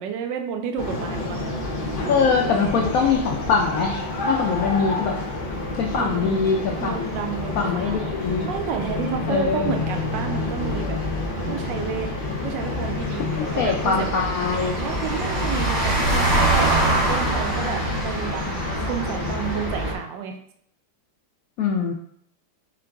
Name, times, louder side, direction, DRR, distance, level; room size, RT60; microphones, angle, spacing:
voice 1, 0.0-1.4 5.9-6.5 6.8-8.1 8.4-11.0 11.5-12.1 12.4-16.4 16.9-20.4, right 7 dB, 75° right, 5 dB, 1.1 m, -31 dB
sound 1, 0.8-19.9, left 2 dB, 45° left, 0.7 m, -29 dB
sound 2, 1.4-19.9, right 2 dB, 60° right, 1.8 m, -28 dB
voice 2, 2.1-4.0 4.3-5.2 5.8-7.1 7.6-8.5 9.3-9.8 13.4-14.8 21.6-21.9, left 5 dB, 85° left, 1 dB, 0.7 m, -23 dB
3.8 x 3.7 x 3.4 m, 0.67 s
omnidirectional pair, 2.1 m